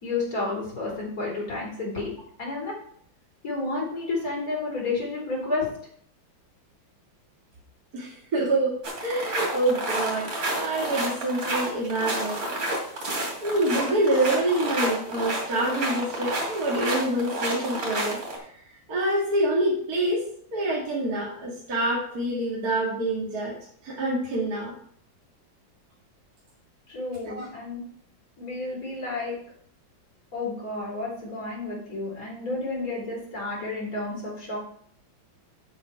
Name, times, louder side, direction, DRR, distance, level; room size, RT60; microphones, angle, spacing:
voice 1, 0.0-2.1 2.4-2.7 3.4-5.7 26.9-27.8 28.4-29.3 30.3-34.6, left 3 dB, 45° left, -4 dB, 4.4 m, -31 dB
voice 2, 7.9-12.4 13.4-18.2 18.9-20.2 20.5-23.5 23.8-24.7 27.3-27.5, right 1 dB, 50° right, -5 dB, 2.6 m, -26 dB
sound 1, 8.8-18.4, right 1 dB, 75° right, 3.4 m, -30 dB
7.9 x 7.7 x 4.7 m, 0.62 s
omnidirectional pair, 2.2 m